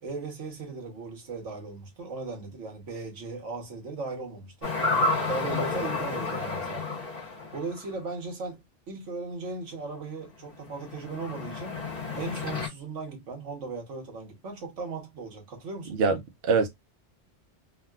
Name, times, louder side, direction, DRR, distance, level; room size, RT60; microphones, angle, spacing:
voice 1, 0.0-4.8 5.3-7.0 7.5-11.8 12.1-16.0, right 3 dB, 85° right, 1.4 m, -37 dB
sound 1, 4.6-8.0 10.7-12.7, left 3 dB, 10° left, 1.1 m, -30 dB
voice 2, 16.0-16.7, right 4 dB, 65° right, 0.8 m, -24 dB
3.6 x 2.3 x 2.3 m
omnidirectional pair, 1.2 m